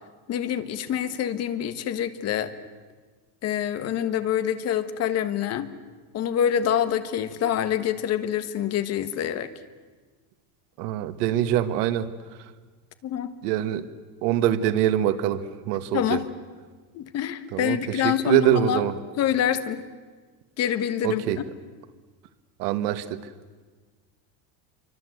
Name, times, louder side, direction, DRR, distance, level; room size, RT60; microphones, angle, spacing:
voice 1, 0.3-2.5 3.4-5.7 6.1-9.5 13.0-13.3 15.9-16.3 16.9-18.8 19.2-19.8 20.6-21.2, left 9 dB, 35° left, 10 dB, 1.4 m, -26 dB
voice 2, 10.8-12.1 13.4-13.9 14.2-16.2 17.5-17.8 18.0-18.9 21.0-21.4 22.6-23.2, right 11 dB, 85° right, 11 dB, 1.8 m, -24 dB
28.0 x 24.5 x 8.0 m, 1.4 s
cardioid pair, 180°, 46 cm